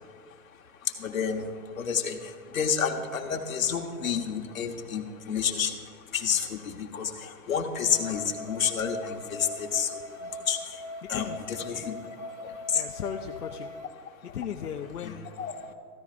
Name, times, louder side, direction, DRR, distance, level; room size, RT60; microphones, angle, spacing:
voice 1, 1.0-1.4 1.8-2.2 2.5-5.7 6.1-9.9 10.5-10.6 11.1-11.9 12.7-12.8 15.0-15.1 15.4-15.5, left 7 dB, 60° left, 3 dB, 1.3 m, -29 dB
sound 1, 7.9-13.9, left 2 dB, 60° right, 0.9 m, -41 dB
voice 2, 11.0-11.4 11.7-11.9 12.7-13.7 14.2-15.3, left 8 dB, 80° left, 1 dB, 0.9 m, -36 dB
14.5 x 14.0 x 2.5 m, 2.1 s
hypercardioid pair, 175°, 45 cm